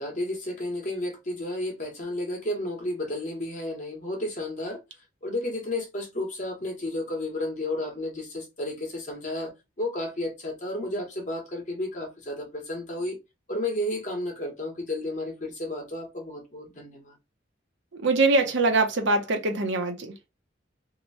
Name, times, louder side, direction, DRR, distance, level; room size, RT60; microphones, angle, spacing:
voice 1, 0.0-4.8 5.2-9.5 9.8-13.2 13.5-17.1, left 1 dB, 40° left, 1.1 m, -32 dB
voice 2, 17.9-20.1, right 3 dB, 70° right, 0.8 m, -23 dB
2.8 x 2.2 x 4.0 m
head